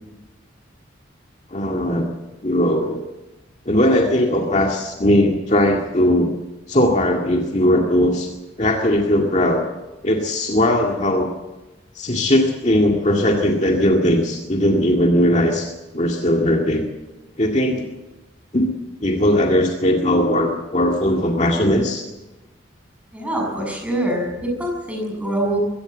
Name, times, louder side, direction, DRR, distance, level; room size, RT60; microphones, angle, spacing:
voice 1, 1.5-2.1 2.4-3.0 3.7-6.3 6.7-8.3 8.6-9.6 10.0-11.3 11.9-16.8 17.4-17.9 18.5-18.7 19.0-22.0, left 1 dB, 35° left, 1 dB, 2.0 m, -19 dB
voice 2, 23.1-25.6, right 1 dB, 5° right, 0 dB, 6.9 m, -24 dB
22.0 x 17.0 x 8.1 m, 1.1 s
head